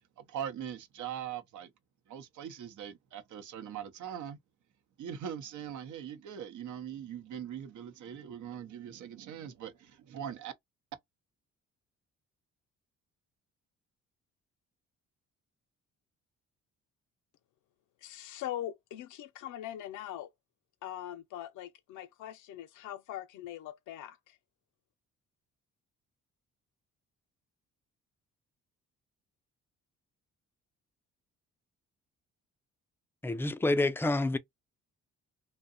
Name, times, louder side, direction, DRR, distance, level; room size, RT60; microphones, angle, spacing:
voice 1, 0.2-1.7 2.1-4.4 5.0-10.5, right 9 dB, 75° right, 0.7 m, -41 dB
voice 2, 18.0-20.3 20.8-24.4, left 12 dB, 80° left, 0.5 m, -42 dB
voice 3, 33.2-34.4, left 2 dB, 10° left, 0.3 m, -28 dB
2.7 x 2.1 x 2.5 m
cardioid pair, 90°, 30 cm